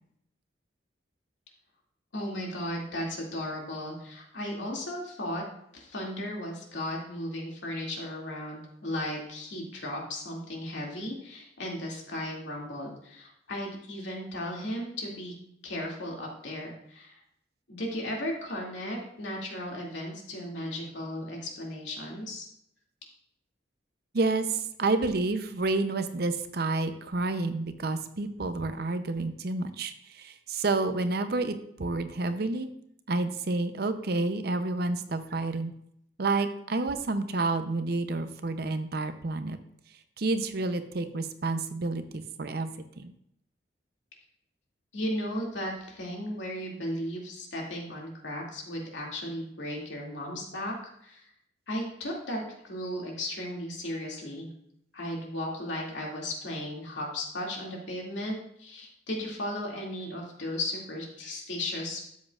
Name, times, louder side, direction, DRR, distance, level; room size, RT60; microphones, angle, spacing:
voice 1, 2.1-5.4 5.7-15.3 15.6-17.2 17.7-22.4 44.9-50.7 51.0-51.2 51.7-54.5 54.9-62.0, left 1 dB, 75° left, -2 dB, 2.4 m, -35 dB
voice 2, 24.1-32.7 33.1-35.7 36.2-39.6 40.2-42.7 43.0-43.1, right 3 dB, 55° right, 10 dB, 0.6 m, -29 dB
12.5 x 7.4 x 2.4 m, 0.73 s
head